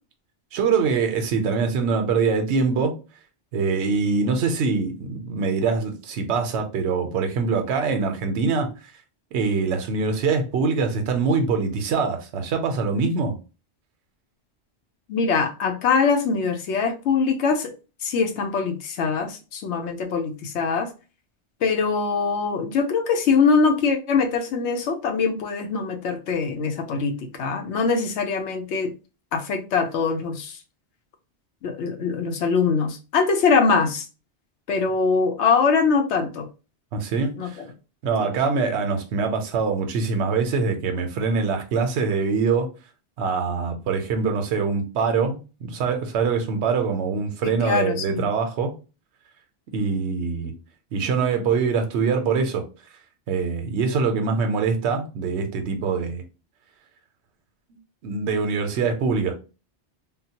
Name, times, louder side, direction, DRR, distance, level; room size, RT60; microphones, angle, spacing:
voice 1, 0.5-2.9 3.5-8.9 9.3-13.4 36.9-37.6 38.0-42.7 43.2-48.7 49.7-50.5 50.9-52.6 53.3-56.2 58.0-59.3, right 5 dB, 85° right, 0.9 m, -24 dB
voice 2, 15.1-17.7 18.0-20.9 21.6-28.9 29.3-30.6 31.6-34.1 34.7-36.5 37.4-37.7 38.2-38.3 47.4-48.3, left 5 dB, 90° left, 0.9 m, -23 dB
3.7 x 2.0 x 2.8 m
omnidirectional pair, 1.1 m